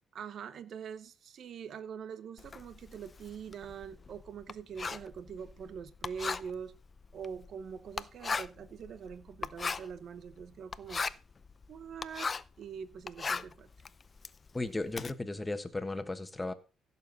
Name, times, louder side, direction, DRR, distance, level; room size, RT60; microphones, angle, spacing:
voice 1, 0.1-6.7 7.1-11.0 11.7-12.3 12.6-13.7, right 7 dB, 65° right, 0.9 m, -43 dB
Writing, 2.4-12.6 12.9-15.1, left 4 dB, 35° left, 0.5 m, -38 dB
voice 2, 14.5-16.5, left 2 dB, 15° left, 1.4 m, -35 dB
15.5 x 7.2 x 4.1 m
cardioid pair, 90°, 0 cm